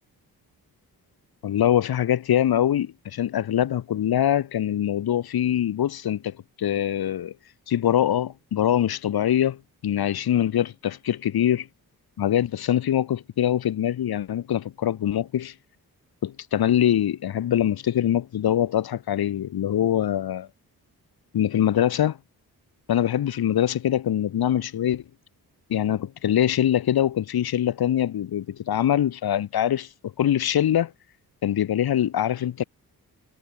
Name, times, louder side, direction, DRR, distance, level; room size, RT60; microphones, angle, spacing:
voice 1, 1.4-7.3 7.7-11.7 12.2-15.5 16.2-20.5 21.3-22.2 22.9-25.0 25.7-30.9 31.4-32.6, left 10 dB, 75° left, 1.6 m, -23 dB
cardioid pair, 70°, 37 cm